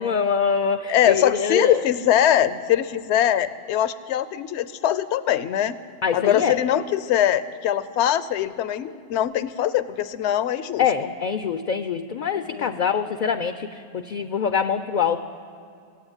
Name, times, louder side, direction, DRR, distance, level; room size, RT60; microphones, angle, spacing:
voice 1, 0.0-1.8 6.0-6.6 10.8-15.2, left 6 dB, 55° left, 10 dB, 0.5 m, -24 dB
voice 2, 0.9-5.8 6.1-10.8 12.5-12.7, left 11 dB, 70° left, 15 dB, 0.9 m, -22 dB
17.0 x 8.5 x 8.8 m, 2.5 s
omnidirectional pair, 1.2 m